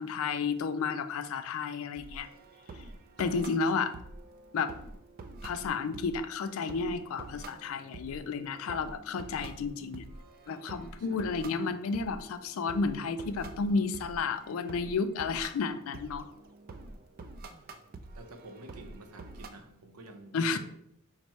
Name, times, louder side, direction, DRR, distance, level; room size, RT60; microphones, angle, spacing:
voice 1, 0.0-2.3 3.2-3.9 4.5-4.7 5.4-10.0 10.5-16.3 20.3-20.6, left 4 dB, 65° left, 0.3 m, -32 dB
sound 1, 2.0-19.5, right 2 dB, 40° right, 0.3 m, -47 dB
voice 2, 3.3-3.9 11.0-11.2 17.6-17.7 18.2-20.6, right 2 dB, 85° right, 0.6 m, -50 dB
4.6 x 2.1 x 4.1 m
head